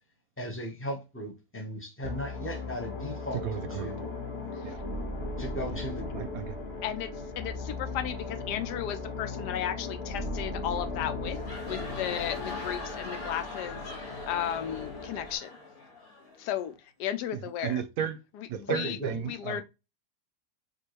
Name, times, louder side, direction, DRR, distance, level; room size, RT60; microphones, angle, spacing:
voice 1, 0.4-3.4 3.8-4.1 5.4-6.3 18.7-19.1, equal, 15° left, 0.5 m, -36 dB
sound 1, 2.0-15.4, left 3 dB, 45° left, 1.1 m, -37 dB
voice 2, 3.3-3.9 4.6-4.8 5.7-5.8 6.1-6.6 17.3-18.2 18.5-19.6, right 8 dB, 70° right, 0.9 m, -34 dB
voice 3, 6.8-11.4 11.6-15.5 16.4-16.7 17.0-17.8 18.4-19.0 19.2-19.6, left 10 dB, 85° left, 1.2 m, -34 dB
sound 2, 11.2-16.7, left 3 dB, 60° left, 2.2 m, -42 dB
4.8 x 2.7 x 2.9 m
omnidirectional pair, 1.7 m